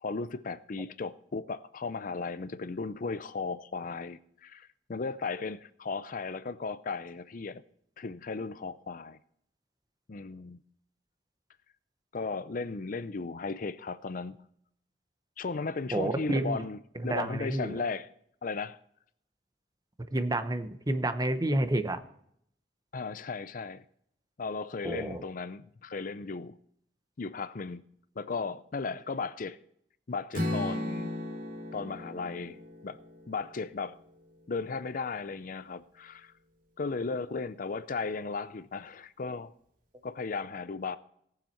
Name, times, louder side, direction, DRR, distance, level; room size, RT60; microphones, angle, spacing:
voice 1, 0.0-7.6 8.0-9.2 10.1-10.6 12.1-14.4 15.4-16.8 17.0-18.1 18.4-18.8 22.9-23.8 24.4-26.6 27.2-27.8 28.2-29.6 30.1-31.1 31.7-33.0 33.3-34.0 34.5-36.3 36.8-39.5 40.0-41.0, left 4 dB, 50° left, 0.5 m, -36 dB
voice 2, 15.9-16.6 17.0-17.8 20.1-22.0 24.8-25.2, right 1 dB, 20° right, 0.9 m, -29 dB
Strum, 30.3-34.5, left 1 dB, 50° right, 2.5 m, -36 dB
17.5 x 7.3 x 4.5 m
head